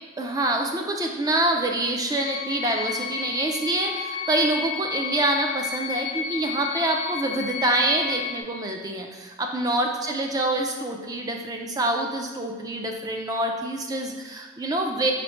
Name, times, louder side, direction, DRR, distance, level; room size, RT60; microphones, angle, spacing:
voice 1, 0.2-15.1, right 1 dB, 20° right, 2 dB, 0.3 m, -26 dB
sound 1, 2.2-8.4, left 7 dB, 55° left, 0.5 m, -32 dB
4.0 x 2.1 x 4.2 m, 1.4 s
head